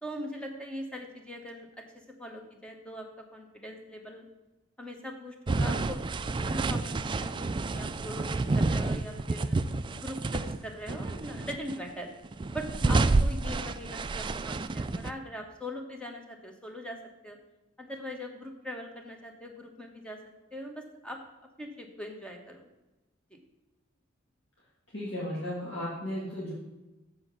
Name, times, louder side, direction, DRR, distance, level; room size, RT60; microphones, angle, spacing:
voice 1, 0.0-4.3 4.8-8.3 8.5-9.6 9.9-12.1 12.5-17.4 17.8-20.2 20.5-21.2 21.6-22.6 23.3-23.4, equal, 5° left, 2 dB, 1.3 m, -41 dB
sound 1, 5.5-10.6 10.9-11.8 12.2-15.1, right 3 dB, 25° right, 0.3 m, -29 dB
voice 2, 24.9-26.5, left 1 dB, 60° left, -5 dB, 2.0 m, -35 dB
7.6 x 7.0 x 6.0 m, 1.0 s
head